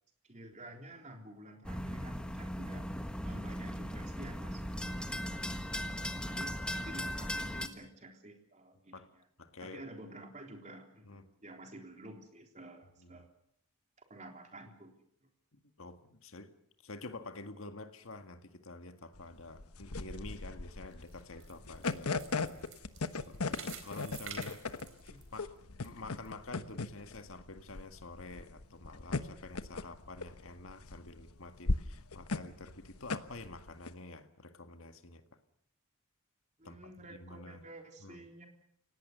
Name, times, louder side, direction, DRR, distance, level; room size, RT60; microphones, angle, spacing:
voice 1, 0.2-2.9 3.2-9.2 9.6-13.3 14.1-14.9 25.1-25.3 36.6-38.5, right 1 dB, 35° right, 3 dB, 3.7 m, -51 dB
sound 1, 1.6-7.7, equal, 5° left, 1.4 m, -38 dB
voice 2, 9.4-9.8 11.0-11.3 13.0-13.2 15.5-16.6 16.8-22.2 23.3-24.6 25.3-25.6 25.8-35.2 36.6-36.8 37.1-37.6 38.0-38.2, left 2 dB, 65° left, 7 dB, 1.8 m, -48 dB
sound 2, 19.2-33.9, left 3 dB, 85° left, 1.2 m, -37 dB
sound 3, 20.9-25.9 26.3-26.4 26.9-27.0, right 8 dB, 60° right, 4.1 m, -50 dB
29.0 x 17.5 x 6.8 m, 0.71 s
head